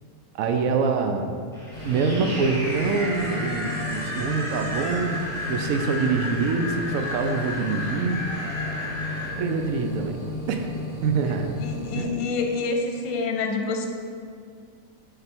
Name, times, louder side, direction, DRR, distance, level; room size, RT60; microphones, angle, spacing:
voice 1, 0.3-1.3 1.8-5.2 5.5-8.3 9.4-10.2 10.4-10.7 11.0-11.5 12.0-12.1, right 4 dB, 75° right, 5 dB, 1.0 m, -25 dB
sound 1, 1.5-9.2, left 1 dB, ahead, 1.3 m, -33 dB
sound 2, 1.7-12.0, left 2 dB, 25° left, 1.6 m, -34 dB
Squeak, 2.0-10.3, right 1 dB, 50° right, 1.4 m, -40 dB
voice 2, 11.6-13.9, left 4 dB, 70° left, 3 dB, 1.0 m, -27 dB
6.5 x 3.9 x 4.4 m, 2.1 s
omnidirectional pair, 1.5 m